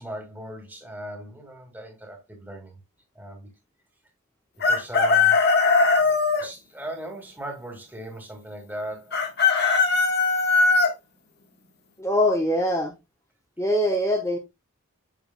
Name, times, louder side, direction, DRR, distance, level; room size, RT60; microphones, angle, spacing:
voice 1, 0.0-2.8 3.2-3.5 4.6-5.4 6.0-9.3, right 1 dB, 10° right, 2.1 m, -38 dB
Chicken rooster, 4.6-6.5 9.1-10.9, left 4 dB, 50° left, 1.4 m, -19 dB
voice 2, 12.0-12.9 13.6-14.4, left 1 dB, 15° left, 1.2 m, -23 dB
8.3 x 6.7 x 2.2 m
head